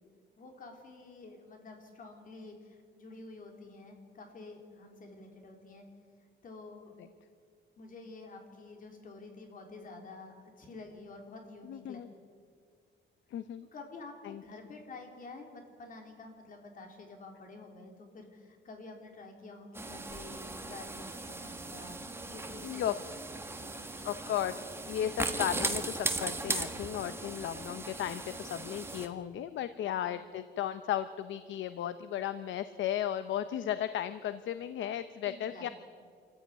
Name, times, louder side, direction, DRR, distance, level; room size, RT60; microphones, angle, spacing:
voice 1, 0.4-5.8 6.4-7.0 7.8-12.0 13.7-22.0 22.3-22.8 23.6-24.1 27.0-27.3 35.3-35.7, left 3 dB, 45° left, 3 dB, 3.8 m, -49 dB
voice 2, 11.6-12.1 13.3-13.7 14.2-14.4 22.6-23.0 24.0-35.7, left 11 dB, 75° left, 12 dB, 0.8 m, -35 dB
sound 1, 19.7-29.1, right 2 dB, 10° right, 1.5 m, -38 dB
26.5 x 15.0 x 9.6 m, 2.1 s
cardioid pair, 160°, 19 cm